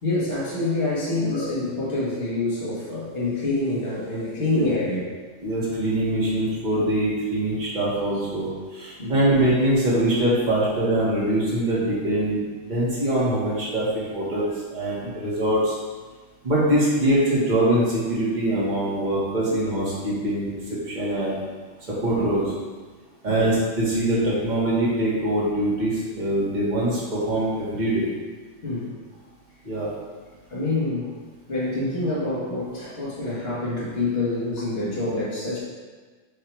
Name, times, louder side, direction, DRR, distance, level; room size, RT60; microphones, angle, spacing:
voice 1, 0.0-5.0 9.0-9.2 14.2-14.4 15.0-15.1 19.4-19.5 22.2-22.3 23.3-23.5 28.6-28.9 30.5-31.1 31.5-35.6, left 2 dB, 50° left, -7 dB, 1.8 m, -26 dB
voice 2, 1.2-1.5 4.5-4.7 5.4-15.7 16.4-20.5 20.8-21.4 21.9-22.5 23.2-28.1 29.6-29.9, right 1 dB, 35° right, -7 dB, 1.8 m, -23 dB
8.4 x 2.9 x 4.6 m, 1.4 s
omnidirectional pair, 1.3 m